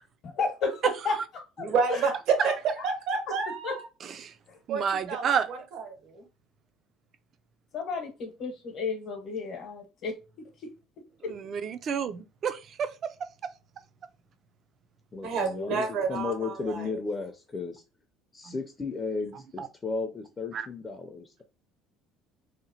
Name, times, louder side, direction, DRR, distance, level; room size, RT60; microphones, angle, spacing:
voice 1, 0.2-1.1 1.6-1.7 3.6-3.7 7.7-10.1 11.2-11.3, left 4 dB, 60° left, 0.8 m, -32 dB
voice 2, 1.6-2.5 2.8-3.9 4.7-6.2 15.2-16.9, right 5 dB, 70° right, 0.8 m, -29 dB
voice 3, 4.7-5.5 11.3-12.9 18.5-18.6 19.6-19.7 20.5-20.7, right 7 dB, 45° right, 0.3 m, -30 dB
voice 4, 15.1-17.8 18.3-21.4, left 4 dB, 25° left, 0.4 m, -34 dB
2.8 x 2.0 x 2.7 m
supercardioid pair, 100°, 0 cm